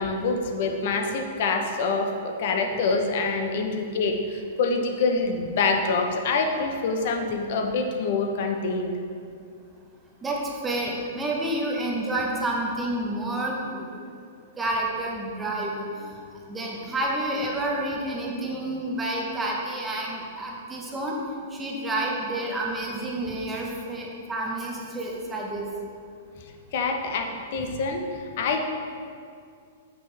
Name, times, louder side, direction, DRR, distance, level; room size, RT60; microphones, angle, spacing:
voice 1, 0.0-8.9 26.7-28.6, left 4 dB, 50° left, 4 dB, 0.7 m, -26 dB
voice 2, 10.2-14.0 14.6-16.1 16.5-21.2 21.5-25.7, right 1 dB, 10° right, -2 dB, 0.8 m, -29 dB
6.9 x 5.7 x 3.3 m, 2.3 s
hypercardioid pair, 165°, 0 cm